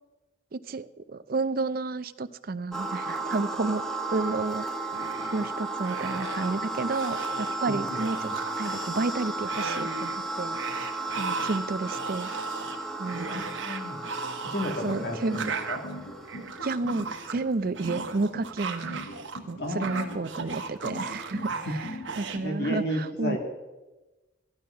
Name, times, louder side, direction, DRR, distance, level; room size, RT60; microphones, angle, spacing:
voice 1, 0.5-3.8 4.1-4.7 5.3-8.3 8.6-12.3 13.0-13.4 14.8-15.4 16.6-19.0 19.5-21.8 22.2-23.4, right 3 dB, 50° right, 12 dB, 0.5 m, -31 dB
sound 1, 2.7-16.8, right 2 dB, ahead, 0.9 m, -34 dB
sound 2, 4.9-5.5 5.8-6.6 6.9-7.6 7.9-9.1 9.5-10.2 10.5-19.4 19.7-22.4, right 5 dB, 80° right, 1.2 m, -36 dB
voice 2, 7.7-8.3 13.3-14.0 14.4-15.8 19.6-20.2 22.4-23.4, equal, 55° left, 3 dB, 2.1 m, -33 dB
sound 3, 14.8-22.4, left 1 dB, 85° left, 4.2 m, -40 dB
14.0 x 11.5 x 5.6 m, 1.1 s
head